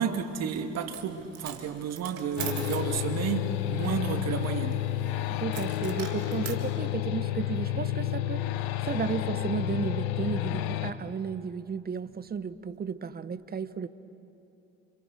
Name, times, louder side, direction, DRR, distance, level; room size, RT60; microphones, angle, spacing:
voice 1, 0.0-4.9, right 7 dB, 50° right, 2.2 m, -31 dB
Coin (dropping), 0.8-1.1 1.3-2.9 5.5-6.6, right 10 dB, 80° right, 2.2 m, -40 dB
sound 1, 2.4-10.9, left 13 dB, 70° left, 1.1 m, -30 dB
voice 2, 5.3-13.9, right 6 dB, 30° right, 1.1 m, -34 dB
30.0 x 27.5 x 6.5 m
hypercardioid pair, 60°, 32 cm